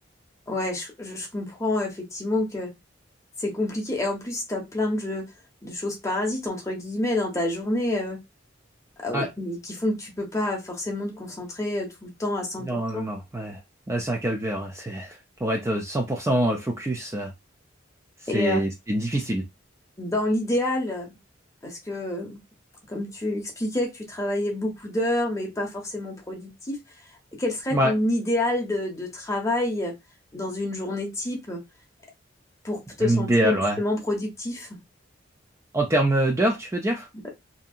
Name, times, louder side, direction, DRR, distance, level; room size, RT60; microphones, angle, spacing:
voice 1, 0.5-2.7 3.4-5.3 5.6-8.2 9.0-12.7 12.9-13.1 18.3-18.6 20.0-21.2 21.6-22.4 22.9-26.8 27.4-29.9 30.3-31.6 32.6-34.8 37.2-37.3, left 1 dB, 15° left, 0 dB, 0.8 m, -28 dB
voice 2, 12.6-13.6 13.9-17.3 18.3-19.4 27.7-27.9 33.0-33.8 35.7-37.1, right 1 dB, 15° right, 0 dB, 0.4 m, -25 dB
2.7 x 2.6 x 2.3 m, 0.21 s
head